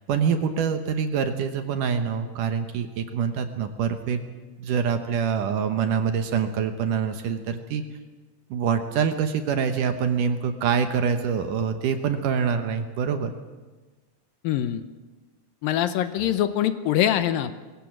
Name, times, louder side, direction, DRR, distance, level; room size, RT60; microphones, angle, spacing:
voice 1, 0.0-4.3 4.6-7.8 8.5-13.3, right 7 dB, 65° right, 7 dB, 2.4 m, -25 dB
voice 2, 14.4-14.8 15.6-17.5, left 11 dB, 75° left, 11 dB, 2.4 m, -23 dB
21.0 x 17.5 x 7.6 m, 1.3 s
omnidirectional pair, 4.4 m